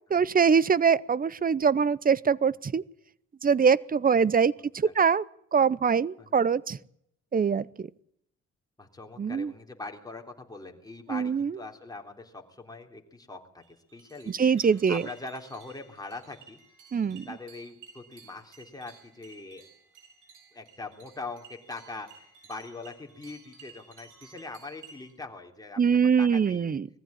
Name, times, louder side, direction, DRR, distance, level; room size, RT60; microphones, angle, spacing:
voice 1, 0.1-2.8 3.4-5.2 5.5-6.8 7.3-7.9 9.2-9.5 11.1-11.5 14.4-15.0 16.9-17.2 25.8-26.8, right 6 dB, 30° right, 22 dB, 0.7 m, -23 dB
voice 2, 4.6-4.9 6.2-6.4 7.6-7.7 8.8-16.6 17.3-19.6 20.5-26.7, left 3 dB, 10° left, 2 dB, 3.6 m, -42 dB
sound 1, 13.6-25.1, right 5 dB, 80° right, 7.6 m, -54 dB
20.5 x 15.0 x 8.7 m, 0.74 s
cardioid pair, 90°, 30 cm